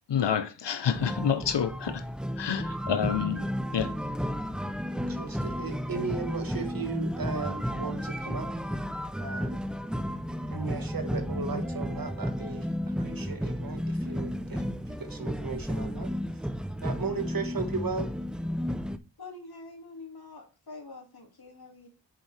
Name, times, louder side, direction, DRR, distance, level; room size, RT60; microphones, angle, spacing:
voice 1, 0.1-2.0 2.4-3.5 3.7-3.9, left 8 dB, 75° left, 0.7 m, -28 dB
sound 1, 0.9-19.0, equal, ahead, 0.4 m, -33 dB
voice 2, 5.0-8.5 9.2-9.6 10.5-16.4 16.8-18.1, right 4 dB, 50° right, 1.4 m, -36 dB
voice 3, 19.2-21.9, left 3 dB, 60° left, 2.2 m, -45 dB
7.3 x 6.7 x 3.3 m
wide cardioid pair, 90°, 43 cm